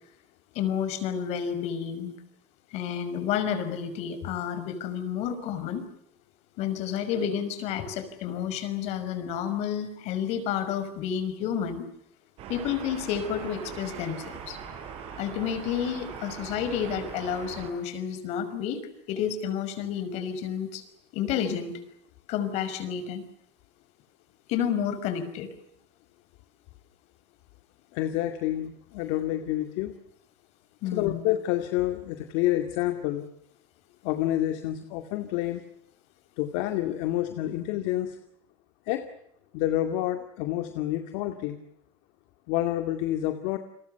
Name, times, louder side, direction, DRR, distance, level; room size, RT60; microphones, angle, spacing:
voice 1, 0.5-2.1 2.7-5.9 6.6-11.8 12.5-14.6 15.2-18.8 19.1-20.8 21.1-21.8 22.3-23.2 24.5-25.5 30.8-31.2, left 8 dB, 60° left, 11 dB, 5.7 m, -30 dB
sound 1, 12.4-17.7, right 7 dB, 55° right, 7.7 m, -41 dB
voice 2, 27.9-29.9 30.9-33.2 34.0-35.6 36.4-38.2 38.9-39.0 39.5-41.6 42.5-43.6, left 14 dB, 80° left, 7 dB, 2.3 m, -28 dB
30.0 x 23.0 x 6.9 m, 0.75 s
cardioid pair, 145°, 12 cm